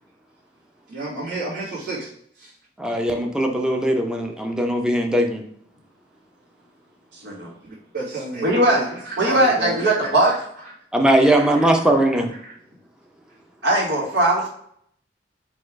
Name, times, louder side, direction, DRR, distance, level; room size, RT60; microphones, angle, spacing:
voice 1, 0.9-2.1 2.3-2.5 7.6-10.1 10.6-10.7 11.3-12.5, right 2 dB, 55° right, -10 dB, 1.6 m, -32 dB
voice 2, 2.8-5.4 10.9-12.3, right 1 dB, 5° right, 3 dB, 0.5 m, -19 dB
voice 3, 8.4-8.8 9.2-10.3 13.6-14.5, right 1 dB, 80° right, -3 dB, 1.4 m, -19 dB
4.2 x 2.4 x 4.5 m, 0.67 s
head